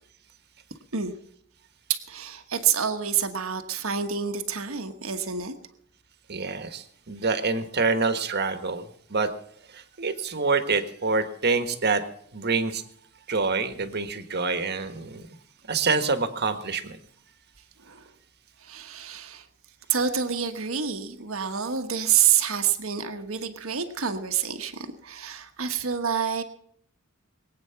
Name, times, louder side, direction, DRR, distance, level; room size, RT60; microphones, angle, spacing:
voice 1, 1.9-5.5 17.8-18.0 18.6-19.5 19.9-26.4, right 8 dB, 70° right, 7 dB, 1.3 m, -27 dB
voice 2, 6.3-9.3 9.7-12.0 12.3-12.8 13.3-15.3 15.7-17.0, right 4 dB, 50° right, 9 dB, 1.5 m, -26 dB
22.5 x 8.8 x 5.8 m, 0.65 s
head